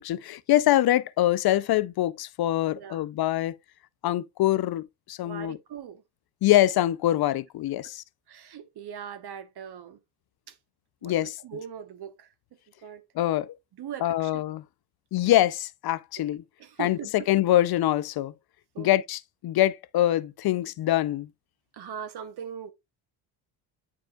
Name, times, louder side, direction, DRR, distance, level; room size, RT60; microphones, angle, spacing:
voice 1, 0.0-3.6 4.0-5.6 6.4-8.0 11.0-11.3 13.2-13.5 14.0-14.6 15.1-16.4 16.8-18.3 18.8-21.3, left 14 dB, 50° left, 0.6 m, -24 dB
voice 2, 2.7-3.0 5.2-6.0 7.8-7.9 8.3-10.0 10.5-10.6 11.0-12.3 12.8-13.0 13.8-14.4 16.2-16.3 16.6-17.3 18.7-18.9 21.7-22.7, right 8 dB, 50° right, 1.0 m, -40 dB
8.9 x 4.8 x 2.3 m
supercardioid pair, 60°, 49 cm